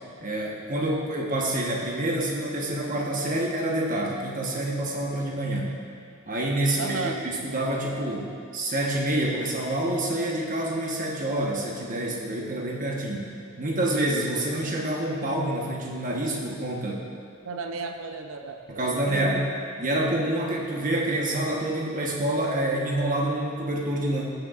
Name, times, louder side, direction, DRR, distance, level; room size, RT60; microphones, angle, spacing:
voice 1, 0.2-5.8 6.3-13.3 13.6-17.1 18.7-19.5 19.8-24.3, right 1 dB, 40° right, -2 dB, 1.1 m, -27 dB
voice 2, 6.8-7.2 17.4-19.4, right 4 dB, 70° right, 4 dB, 0.6 m, -34 dB
15.5 x 6.7 x 2.5 m, 2.2 s
head